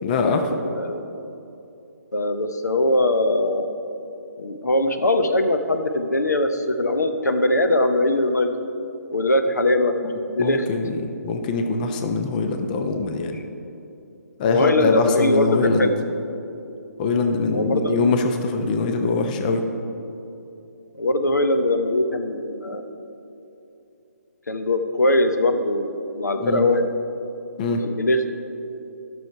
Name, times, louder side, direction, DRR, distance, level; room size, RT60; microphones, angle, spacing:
voice 1, 0.0-0.5 10.0-10.1 10.4-13.4 14.4-15.9 17.0-19.7 26.4-26.7 27.6-27.9, left 4 dB, 30° left, 5 dB, 0.6 m, -23 dB
voice 2, 2.1-3.7 4.4-8.5 9.1-9.9 10.3-10.7 14.5-15.9 17.5-18.0 20.9-22.8 24.5-26.9 27.8-28.3, left 1 dB, 80° left, 7 dB, 0.8 m, -21 dB
11.5 x 6.4 x 4.6 m, 2.8 s
figure-of-eight pair, 140°, 9 cm